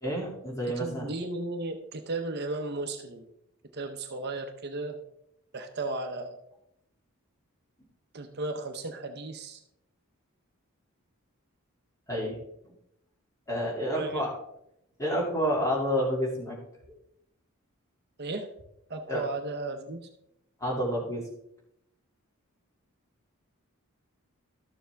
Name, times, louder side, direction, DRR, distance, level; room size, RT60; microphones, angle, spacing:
voice 1, 0.0-1.1 12.1-12.4 13.5-14.3 15.0-16.6 19.1-19.2 20.6-21.2, equal, 15° left, -3 dB, 2.4 m, -29 dB
voice 2, 0.8-3.3 3.7-5.0 5.5-6.4 8.1-9.6 13.9-14.2 18.2-18.5 18.9-20.0, right 2 dB, 50° right, 6 dB, 0.7 m, -35 dB
12.5 x 7.1 x 3.4 m, 0.80 s
head